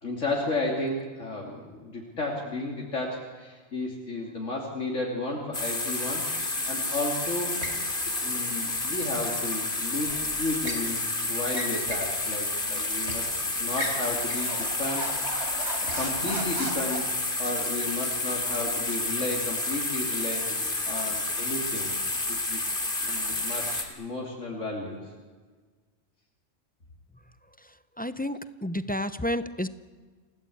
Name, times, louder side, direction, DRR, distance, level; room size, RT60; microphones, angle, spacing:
voice 1, 0.0-7.6 8.2-13.3 13.6-17.1 17.4-20.4 20.8-21.9 22.3-22.6 23.1-25.1, left 2 dB, 70° left, -1 dB, 3.2 m, -33 dB
sound 1, 5.5-23.8, left 2 dB, 40° left, 2.9 m, -30 dB
sound 2, 7.6-7.8 10.0-10.9 11.5-12.1 12.5-12.6 13.1-13.3 13.7-17.0, right 1 dB, 55° right, 4.0 m, -36 dB
voice 2, 28.0-29.7, left 1 dB, 10° left, 13 dB, 0.5 m, -30 dB
28.0 x 18.0 x 8.6 m, 1.5 s
omnidirectional pair, 1.3 m